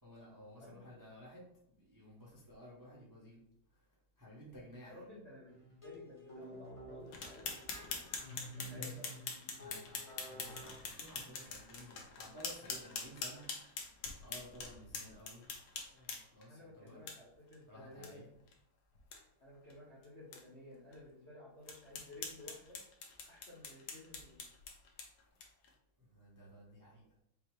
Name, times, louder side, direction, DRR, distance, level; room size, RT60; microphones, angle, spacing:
voice 1, 0.0-3.4 4.2-5.0 9.6-10.0 10.3-13.5 14.2-15.5 15.9-17.0 17.7-18.3 26.0-27.1, equal, 20° right, -5 dB, 0.5 m, -54 dB
voice 2, 0.5-0.9 4.8-5.5 5.8-8.1 8.5-9.2 16.5-18.3 19.4-22.8 23.3-24.5, left 1 dB, 50° left, -6 dB, 0.8 m, -55 dB
sound 1, 5.5-10.7, equal, 25° left, 0.8 m, -51 dB
sound 2, 7.1-16.4 17.1-17.2 17.5-17.6 18.0-18.1 18.5-18.6 19.0-19.2 19.7-19.8 20.3-20.4 20.9-21.0 21.7-25.7, left 5 dB, 65° left, 1.1 m, -45 dB
5.3 x 2.1 x 4.6 m, 0.73 s
omnidirectional pair, 2.3 m